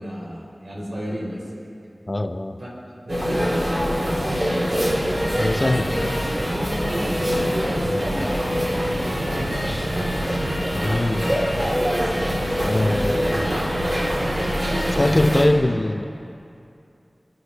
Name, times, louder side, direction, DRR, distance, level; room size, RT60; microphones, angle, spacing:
voice 1, 0.0-1.5 2.6-2.7 3.0-5.0 5.6-5.9 6.3-9.7 12.7-13.9, equal, 90° right, -5 dB, 4.5 m, -33 dB
voice 2, 2.1-2.6 5.4-6.1 10.7-11.3 12.6-13.4 14.9-16.1, left 1 dB, 40° left, 7 dB, 0.7 m, -22 dB
sound 1, 3.1-15.4, equal, 50° right, 3.8 m, -24 dB
28.5 x 10.5 x 3.5 m, 2.5 s
wide cardioid pair, 60°, 0 cm